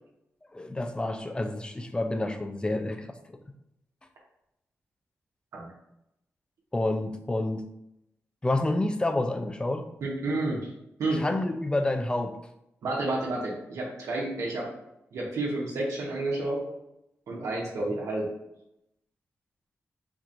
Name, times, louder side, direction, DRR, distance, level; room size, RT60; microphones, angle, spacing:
voice 1, 0.5-3.1 6.7-7.7 8.4-9.9 11.2-12.4, left 2 dB, 15° left, 7 dB, 0.5 m, -28 dB
voice 2, 10.0-10.7 11.0-11.2 12.8-14.7 15.1-16.6 17.3-18.2, right 2 dB, 85° right, -4 dB, 1.1 m, -30 dB
4.4 x 4.2 x 2.5 m, 0.83 s
cardioid pair, 70°, 5 cm